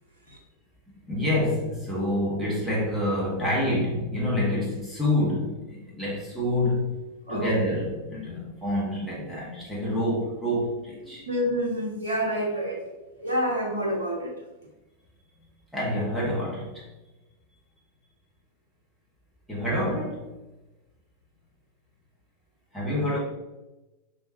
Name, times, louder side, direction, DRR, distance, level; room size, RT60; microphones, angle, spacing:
voice 1, 1.1-7.0 7.3-11.2 15.7-16.9 19.5-20.3 22.7-23.2, left 1 dB, 5° right, 1.5 m, -27 dB
voice 2, 11.1-12.8 13.2-14.3, equal, 65° right, 1.5 m, -28 dB
5.4 x 3.0 x 2.8 m
figure-of-eight pair, 90°, 0 cm